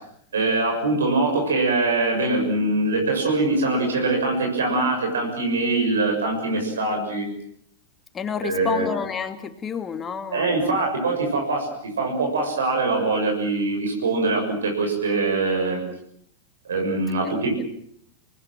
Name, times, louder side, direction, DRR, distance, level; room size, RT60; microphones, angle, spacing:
voice 1, 0.3-7.3 8.4-8.9 10.3-15.8 16.6-17.5, right 3 dB, 70° right, 2 dB, 6.8 m, -23 dB
voice 2, 8.1-10.9 17.2-17.6, left 6 dB, 20° left, 7 dB, 2.6 m, -30 dB
28.0 x 20.0 x 7.6 m, 0.70 s
figure-of-eight pair, 90°, 0 cm